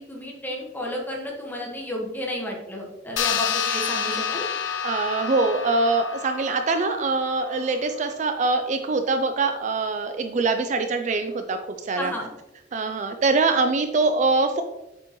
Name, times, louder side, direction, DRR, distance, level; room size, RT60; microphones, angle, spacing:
voice 1, 0.0-4.5 11.9-12.3, left 1 dB, 10° left, -2 dB, 1.4 m, -32 dB
sound 1, 3.2-8.0, left 7 dB, 85° left, 0.6 m, -29 dB
voice 2, 4.8-11.6 11.9-12.1 12.7-14.6, right 3 dB, 40° right, 7 dB, 0.4 m, -23 dB
8.2 x 5.0 x 3.0 m, 0.97 s
head